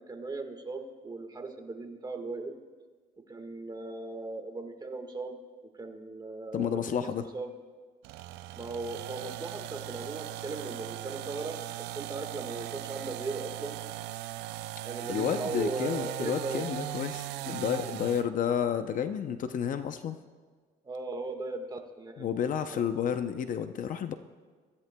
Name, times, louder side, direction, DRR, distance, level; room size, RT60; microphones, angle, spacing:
voice 1, 0.0-2.5 3.3-7.5 8.6-13.8 14.8-16.7 20.8-22.3 22.6-22.8, right 3 dB, 25° right, 4 dB, 1.5 m, -38 dB
voice 2, 6.5-7.2 15.1-20.2 22.2-24.1, left 8 dB, 50° left, 9 dB, 0.6 m, -31 dB
sound 1, 8.0-18.3, right 15 dB, 85° right, 0.4 m, -39 dB
24.0 x 14.0 x 2.3 m, 1.5 s
cardioid pair, 110°, 17 cm